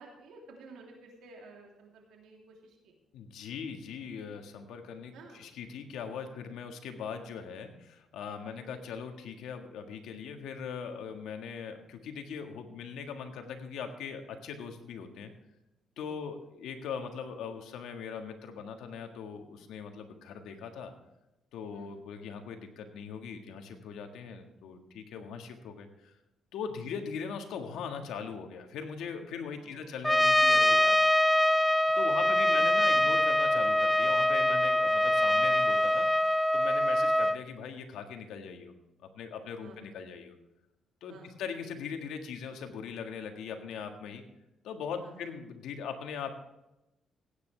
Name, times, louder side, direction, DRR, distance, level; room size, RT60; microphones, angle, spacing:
voice 1, 0.0-2.9 5.1-5.4 8.4-8.6 16.1-16.2 21.7-21.9 29.4-29.9 32.4-32.9 35.0-35.1 39.6-39.8 41.1-41.3 45.0-45.3, right 3 dB, 85° right, 0 dB, 3.2 m, -53 dB
voice 2, 3.1-15.3 16.0-20.9 21.5-26.1 26.5-31.0 31.9-36.1 36.5-38.7 39.1-40.4 41.0-44.2 44.6-46.3, left 6 dB, 85° left, 5 dB, 1.6 m, -40 dB
Trumpet, 30.0-37.4, left 1 dB, 5° left, 0.4 m, -24 dB
16.5 x 9.4 x 3.4 m, 0.92 s
cardioid pair, 90°, 0 cm